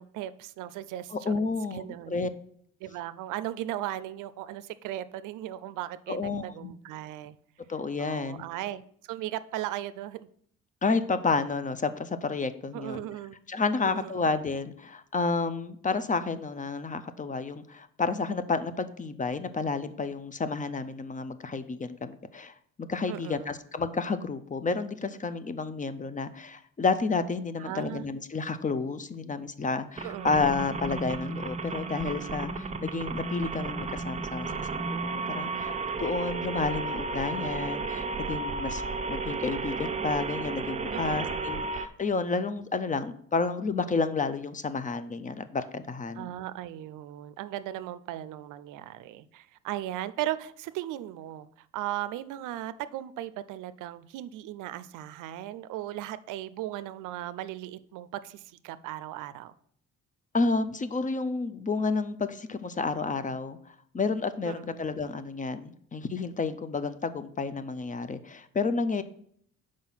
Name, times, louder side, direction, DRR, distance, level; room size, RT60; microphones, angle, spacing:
voice 1, 0.0-1.4 1.7-2.2 2.8-7.4 8.0-10.3 12.7-13.4 13.8-14.3 23.1-23.5 27.6-28.1 30.0-30.3 40.9-41.6 46.2-59.5 64.4-64.8, right 13 dB, 90° right, 15 dB, 0.5 m, -37 dB
voice 2, 1.1-2.3 6.1-6.7 7.7-8.4 10.8-13.0 13.5-38.8 39.1-46.3 60.3-63.6 63.9-69.0, left 4 dB, 25° left, 12 dB, 0.5 m, -30 dB
sound 1, 30.0-41.9, right 3 dB, 25° right, 0.6 m, -33 dB
5.8 x 5.0 x 5.6 m, 0.64 s
cardioid pair, 90°, 30 cm